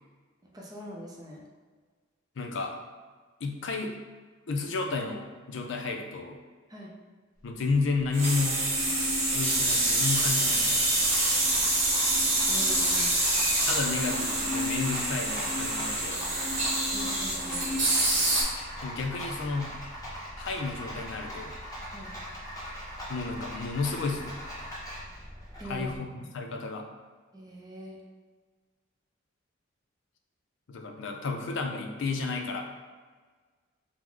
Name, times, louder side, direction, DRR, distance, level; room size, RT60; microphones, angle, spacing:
voice 1, 0.5-1.5 6.7-6.9 12.5-13.2 16.9-17.7 21.9-22.1 25.6-25.9 26.2-26.3 27.3-28.0, right 1 dB, 20° right, -3 dB, 0.5 m, -42 dB
voice 2, 2.4-2.7 3.4-4.0 4.5-6.4 7.4-8.6 9.3-10.9 13.7-16.2 18.8-19.8 20.1-21.5 23.1-24.4 25.6-26.9 30.7-32.6, left 4 dB, 65° left, 3 dB, 0.5 m, -32 dB
Rattle, 7.4-26.0, equal, 20° left, 1.0 m, -41 dB
sound 1, 8.1-18.4, right 1 dB, 35° right, 0.9 m, -26 dB
4.6 x 2.0 x 3.7 m, 1.4 s
head